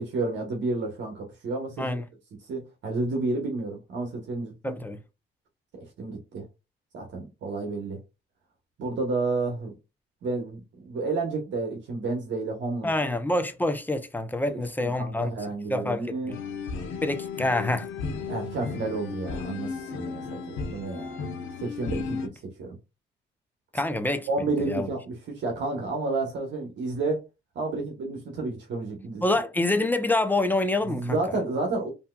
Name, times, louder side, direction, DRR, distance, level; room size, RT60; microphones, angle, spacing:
voice 1, 0.0-1.9 2.5-4.8 6.0-6.4 6.9-8.0 8.8-9.7 10.2-12.9 14.8-16.3 18.3-21.2 21.6-22.3 22.6-22.8 24.3-27.2 27.5-29.3 30.9-31.9, right 3 dB, 65° right, 1.0 m, -30 dB
voice 2, 4.6-5.0 12.8-15.3 15.7-16.3 17.0-17.9 23.7-24.3 24.6-24.9 29.2-31.2, left 2 dB, 10° left, 0.5 m, -26 dB
sound 1, 16.3-22.3, left 5 dB, 85° left, 0.7 m, -34 dB
3.4 x 2.7 x 2.2 m
cardioid pair, 90°, 20 cm